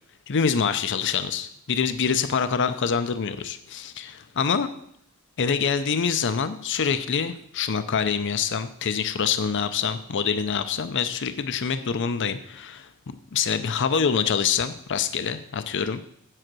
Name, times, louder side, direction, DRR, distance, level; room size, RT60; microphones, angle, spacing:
voice 1, 0.3-4.7 5.4-16.0, left 6 dB, 55° left, 11 dB, 0.6 m, -25 dB
7.7 x 7.6 x 6.1 m, 0.69 s
head